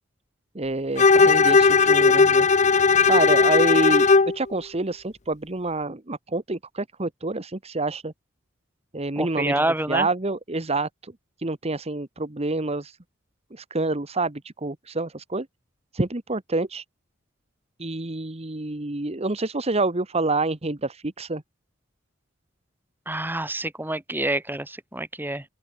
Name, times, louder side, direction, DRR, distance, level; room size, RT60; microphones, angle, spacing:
voice 1, 0.5-2.5 3.0-4.1 4.3-8.1 8.9-9.5 9.9-11.1 11.4-13.0 13.5-15.5 15.9-16.8 17.8-21.4, right 2 dB, 30° right, 1.4 m, -27 dB
Bowed string instrument, 1.0-4.4, left 4 dB, 35° left, 0.8 m, -17 dB
voice 2, 9.2-10.1 23.1-25.4, right 1 dB, 10° right, 3.9 m, -27 dB
open air
head